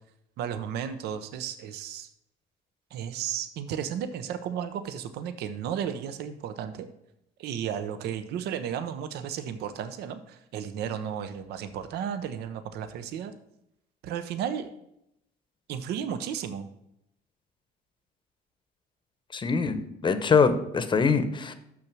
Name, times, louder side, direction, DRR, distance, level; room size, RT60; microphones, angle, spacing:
voice 1, 0.4-2.1 2.9-6.9 7.4-13.3 14.0-14.7 15.7-16.7, right 8 dB, 75° right, 11 dB, 0.6 m, -34 dB
voice 2, 19.3-21.5, left 5 dB, 30° left, 10 dB, 0.8 m, -23 dB
6.2 x 5.9 x 6.0 m, 0.81 s
cardioid pair, 110°, 17 cm